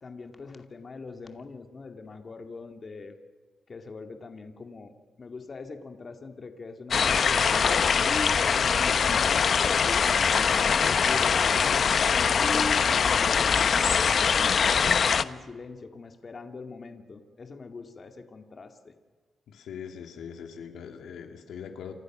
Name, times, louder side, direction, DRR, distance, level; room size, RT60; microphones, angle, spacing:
voice 1, 0.0-3.2 3.7-4.9 5.2-8.9 9.6-10.0 10.3-13.3 14.3-18.9, left 3 dB, 40° left, 5 dB, 2.4 m, -41 dB
sound 1, 6.9-15.2, left 6 dB, 55° left, 0.9 m, -23 dB
voice 2, 19.5-21.9, left 7 dB, 85° left, 5 dB, 2.6 m, -41 dB
30.0 x 26.5 x 6.3 m, 1.4 s
cardioid pair, 90°, 0 cm